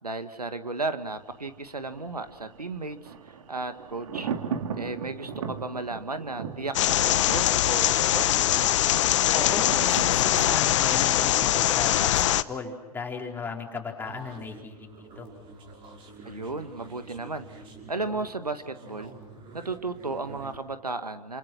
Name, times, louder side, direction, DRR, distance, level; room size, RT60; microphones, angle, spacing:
voice 1, 0.0-4.3 4.8-8.3 16.3-17.4 17.9-19.1 19.5-21.4, right 3 dB, 85° right, 9 dB, 1.8 m, -34 dB
Thunder, 1.2-12.1 12.4-12.5, right 6 dB, 55° right, 2.3 m, -38 dB
sound 1, 6.7-12.4, left 13 dB, 50° left, 0.9 m, -22 dB
voice 2, 9.3-14.9 15.2-15.3, left 4 dB, 10° left, 0 dB, 4.2 m, -35 dB
sound 2, 14.0-20.6, right 3 dB, 25° right, 5.7 m, -48 dB
29.0 x 27.5 x 6.0 m, 1.0 s
figure-of-eight pair, 110°, 19 cm